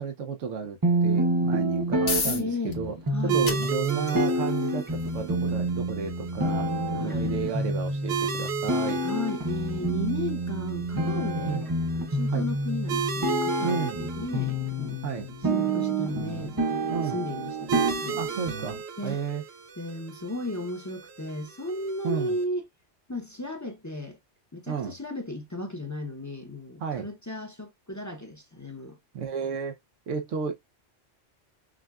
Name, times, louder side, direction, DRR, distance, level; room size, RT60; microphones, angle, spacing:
voice 1, 0.0-3.0 3.2-9.0 11.5-11.7 12.3-12.5 13.6-14.0 15.0-15.3 16.9-17.2 18.2-18.8 19.0-19.4 22.0-22.4 24.7-24.9 26.8-27.1 29.1-29.8 30.1-30.5, right 6 dB, 85° right, 1.1 m, -32 dB
sound 1, 0.8-18.8, right 1 dB, 20° right, 0.7 m, -28 dB
sound 2, 1.7-16.4, left 4 dB, 70° left, 1.6 m, -41 dB
voice 2, 2.2-2.8 3.1-3.4 6.9-7.3 9.0-11.6 11.9-15.0 15.4-18.2 19.0-19.2 19.8-22.7 23.1-24.2 24.5-29.0, left 1 dB, 20° left, 0.6 m, -35 dB
sound 3, 3.3-22.4, right 6 dB, 60° right, 1.0 m, -36 dB
6.1 x 2.2 x 2.3 m
omnidirectional pair, 1.3 m